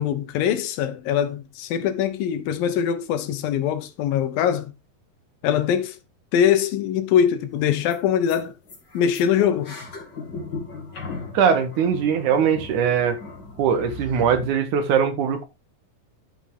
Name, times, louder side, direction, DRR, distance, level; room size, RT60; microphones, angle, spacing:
voice 1, 0.0-4.7 5.4-6.0 6.3-8.6 8.9-9.8, left 9 dB, 85° left, 2.8 m, -22 dB
sound 1, 7.5-7.6 7.9-8.0 8.3-8.4 8.7-14.5, left 3 dB, 35° left, 2.4 m, -37 dB
voice 2, 11.3-13.2 13.6-15.5, right 7 dB, 70° right, 2.3 m, -21 dB
11.5 x 5.4 x 3.6 m
omnidirectional pair, 4.1 m